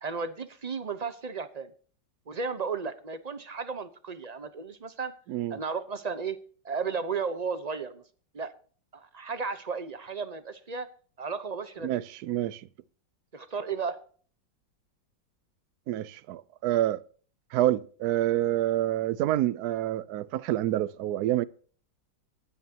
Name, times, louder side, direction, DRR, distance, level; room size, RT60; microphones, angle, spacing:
voice 1, 0.0-1.7 2.3-5.1 5.5-6.4 6.6-8.0 8.3-8.5 8.9-10.9 11.2-12.0 13.3-14.0, right 5 dB, 40° right, 0.5 m, -34 dB
voice 2, 5.3-5.6 11.8-12.7 15.9-17.0 17.5-21.4, right 13 dB, 65° right, 1.0 m, -27 dB
19.5 x 9.5 x 2.8 m
omnidirectional pair, 2.1 m